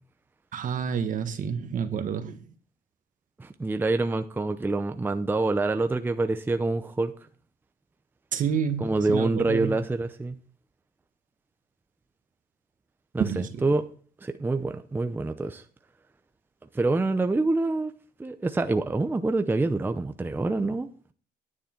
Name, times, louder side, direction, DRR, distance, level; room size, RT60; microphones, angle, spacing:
voice 1, 0.5-2.4 8.3-9.7 13.2-13.6, right 7 dB, 50° right, 1.5 m, -29 dB
voice 2, 3.4-7.1 8.8-10.4 13.1-13.8 14.2-15.6 16.7-17.9 18.2-21.1, right 2 dB, 10° right, 0.6 m, -26 dB
10.0 x 8.8 x 4.4 m
cardioid pair, 110°, 17 cm